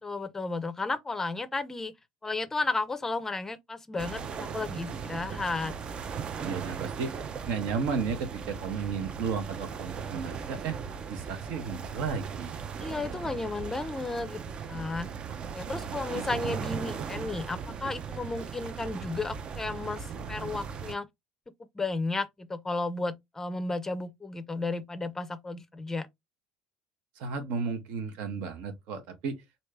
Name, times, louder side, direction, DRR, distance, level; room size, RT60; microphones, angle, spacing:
voice 1, 0.0-1.9 2.2-5.7 6.0-6.6 12.8-15.1 15.5-21.1 21.7-26.1, left 3 dB, 15° left, 0.5 m, -33 dB
sound 1, 4.0-20.9, right 6 dB, 40° right, 0.5 m, -38 dB
voice 2, 6.4-7.1 7.5-10.8 11.1-12.9 15.9-16.2 27.2-29.4, right 5 dB, 60° right, 0.8 m, -34 dB
3.2 x 2.7 x 3.2 m
hypercardioid pair, 65°, 3 cm